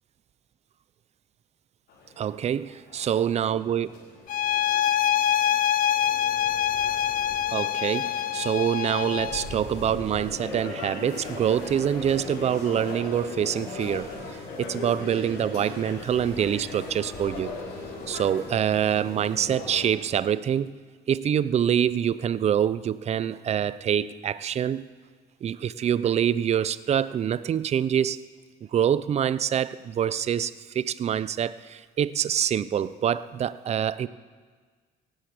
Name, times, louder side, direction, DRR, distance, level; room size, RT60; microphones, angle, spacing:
sound 1, 1.9-19.9, left 3 dB, 80° left, 4.6 m, -39 dB
voice 1, 2.2-3.9 7.5-17.5 18.1-20.7 21.1-24.8 25.4-28.2 28.7-34.1, right 9 dB, 40° right, 0.5 m, -25 dB
sound 2, 4.3-9.6, left 10 dB, 55° left, 0.6 m, -25 dB
17.5 x 10.0 x 8.2 m
cardioid pair, 110°, 17 cm